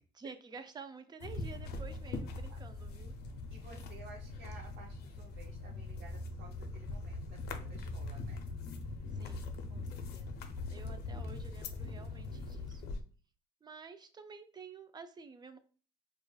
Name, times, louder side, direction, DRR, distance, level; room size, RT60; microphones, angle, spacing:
voice 1, 0.1-3.2 9.1-10.4 10.7-12.9 13.6-15.6, right 5 dB, 25° right, 8 dB, 0.4 m, -51 dB
sound 1, 1.2-13.0, left 3 dB, 70° left, 0.5 m, -42 dB
voice 2, 3.5-8.4, right 3 dB, 75° right, -1 dB, 0.7 m, -55 dB
4.7 x 2.4 x 2.3 m, 0.39 s
cardioid pair, 110°, 17 cm